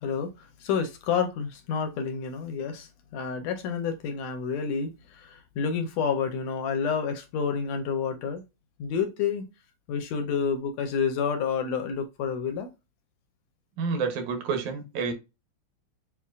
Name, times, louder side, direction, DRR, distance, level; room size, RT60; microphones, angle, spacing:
voice 1, 0.0-8.4 8.8-9.5 9.9-12.7, left 6 dB, 75° left, 1.7 m, -29 dB
voice 2, 13.8-15.1, right 5 dB, 80° right, 2.4 m, -29 dB
6.9 x 2.5 x 2.4 m
omnidirectional pair, 3.4 m